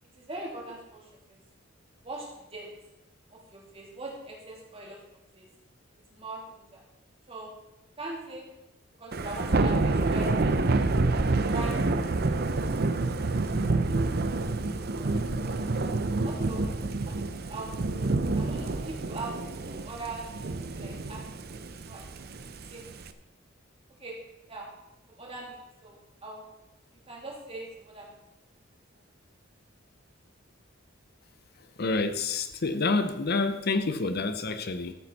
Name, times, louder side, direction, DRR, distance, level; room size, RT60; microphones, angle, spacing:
voice 1, 0.1-1.4 2.0-2.7 3.3-5.5 6.1-6.8 7.3-7.5 8.0-8.5 9.0-10.6 11.5-12.3 14.9-15.2 16.2-16.6 17.0-17.9 18.3-19.3 19.7-21.2 21.8-22.1 22.7-22.9 24.0-24.2 24.5-24.7 25.2-26.4 27.1-28.2, right 2 dB, 30° right, -3 dB, 3.3 m, -41 dB
Thunder / Rain, 9.1-23.1, right 3 dB, 50° right, 0.7 m, -28 dB
voice 2, 31.8-34.9, left 3 dB, 50° left, 9 dB, 0.8 m, -28 dB
14.0 x 8.9 x 4.2 m, 0.99 s
head